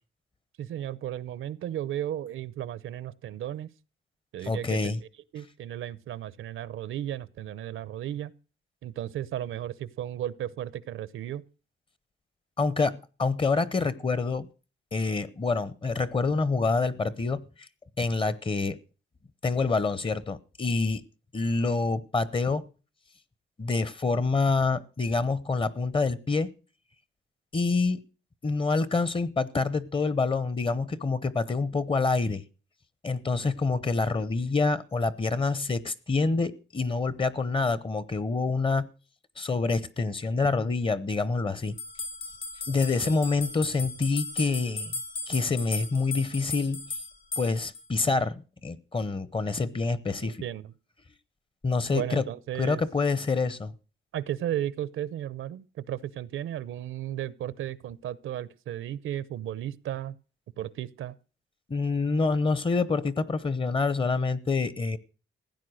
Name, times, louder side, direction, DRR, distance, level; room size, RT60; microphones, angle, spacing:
voice 1, 0.6-3.7 4.3-4.9 5.3-8.3 8.8-11.4 50.2-50.7 51.9-52.8 54.1-60.1 60.6-61.1, right 11 dB, 80° right, 0.8 m, -34 dB
voice 2, 4.4-5.0 12.6-14.5 14.9-17.7 18.0-18.8 19.4-21.0 21.3-22.6 23.6-26.5 27.5-28.0 28.4-32.4 33.0-38.9 39.4-41.8 42.7-44.9 45.3-46.9 47.4-50.4 51.6-52.3 52.6-53.7 61.7-65.0, left 3 dB, 25° left, 0.8 m, -27 dB
sound 1, 41.8-47.8, left 3 dB, 75° left, 3.1 m, -36 dB
16.0 x 9.4 x 6.4 m
cardioid pair, 130°, 20 cm